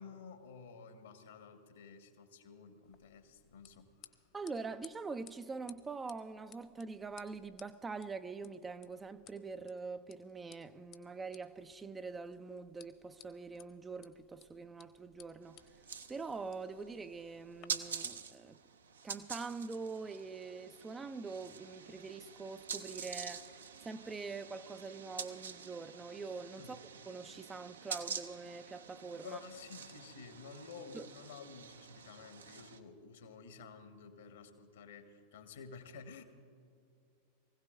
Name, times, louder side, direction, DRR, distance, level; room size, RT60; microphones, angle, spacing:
voice 1, 0.0-4.2 26.6-26.8 29.2-36.2, left 5 dB, 60° left, 1.4 m, -52 dB
sound 1, 2.8-17.7, left 11 dB, 40° left, 1.0 m, -62 dB
voice 2, 4.3-15.6 16.1-18.6 19.0-26.8 27.1-29.4 30.9-31.1, right 4 dB, 15° right, 0.5 m, -44 dB
sound 2, 15.4-32.8, right 6 dB, 70° right, 0.8 m, -47 dB
24.0 x 16.5 x 2.6 m
figure-of-eight pair, 90°, 0 cm